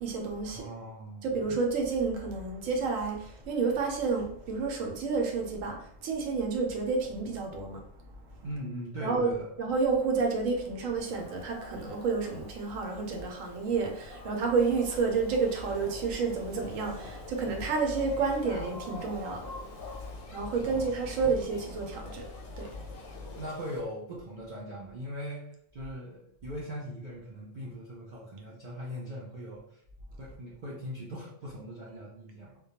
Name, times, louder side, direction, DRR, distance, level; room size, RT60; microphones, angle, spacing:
voice 1, 0.0-0.6 1.2-7.8 9.0-9.3 9.6-19.9 20.3-23.2, right 4 dB, 85° right, 1.0 m, -30 dB
voice 2, 0.5-1.4 8.4-9.5 20.6-20.9 23.4-29.8 30.2-32.6, equal, 55° right, 0.5 m, -40 dB
Dog, 11.0-20.1, left 2 dB, 60° left, 0.7 m, -48 dB
sound 1, 14.5-23.8, left 4 dB, 90° left, 1.0 m, -48 dB
2.2 x 2.2 x 2.8 m
omnidirectional pair, 1.3 m